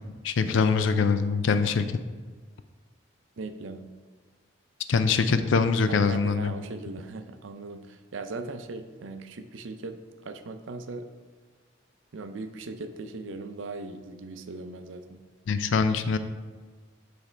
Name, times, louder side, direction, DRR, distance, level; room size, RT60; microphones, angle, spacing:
voice 1, 0.2-1.9 4.9-6.5 15.5-16.2, left 5 dB, 75° left, 10 dB, 0.4 m, -23 dB
voice 2, 3.4-3.9 5.9-10.0 10.2-11.1 12.1-15.3, right 3 dB, 80° right, 9 dB, 0.5 m, -39 dB
8.0 x 3.4 x 4.4 m, 1.5 s
head